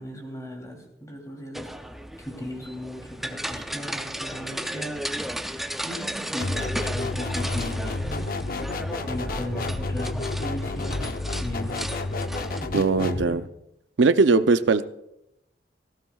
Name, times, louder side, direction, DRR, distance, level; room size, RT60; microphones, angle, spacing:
voice 1, 0.0-1.7 2.2-5.0 5.8-8.7 9.0-11.9 12.6-13.4, equal, 20° left, 1 dB, 3.0 m, -37 dB
sound 1, 1.5-12.7, equal, ahead, 0.5 m, -35 dB
sound 2, 6.4-13.3, left 2 dB, 55° left, 0.7 m, -30 dB
voice 2, 12.7-13.4 14.0-14.8, right 4 dB, 85° right, 11 dB, 0.6 m, -19 dB
18.5 x 15.5 x 2.4 m, 0.83 s
head